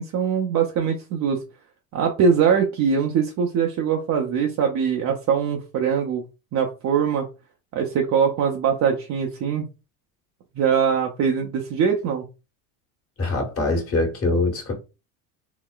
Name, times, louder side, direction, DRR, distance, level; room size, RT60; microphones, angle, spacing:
voice 1, 0.0-1.4 1.9-6.2 6.5-7.3 7.7-9.7 10.6-12.2, right 7 dB, 40° right, 0.6 m, -22 dB
voice 2, 13.2-14.7, left 2 dB, 35° left, 1.4 m, -23 dB
3.8 x 2.0 x 2.3 m
supercardioid pair, 90°, 43 cm